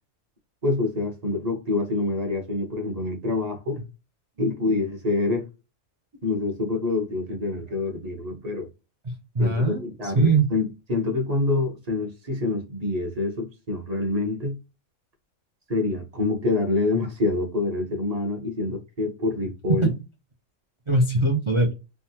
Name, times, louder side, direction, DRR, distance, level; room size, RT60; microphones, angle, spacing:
voice 1, 0.6-3.8 4.4-5.5 6.2-8.7 9.4-14.6 15.7-19.9, left 3 dB, 35° right, 0.9 m, -26 dB
voice 2, 9.0-10.5 19.7-19.9 20.9-21.7, right 2 dB, 50° right, 0.3 m, -22 dB
3.6 x 2.2 x 2.7 m
omnidirectional pair, 1.4 m